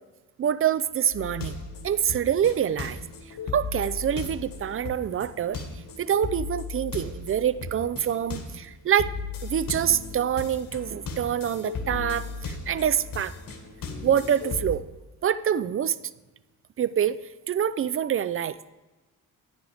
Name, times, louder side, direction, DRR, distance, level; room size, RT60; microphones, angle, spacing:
voice 1, 0.4-3.0 3.5-5.7 6.0-9.1 9.4-13.3 14.0-14.8 15.2-16.0 16.8-17.2 17.5-18.7, right 9 dB, 35° right, 17 dB, 0.5 m, -26 dB
sound 1, 1.1-8.6 9.0-14.7, left 4 dB, 60° left, 1.7 m, -36 dB
10.0 x 9.9 x 3.5 m, 1.2 s
supercardioid pair, 60°, 37 cm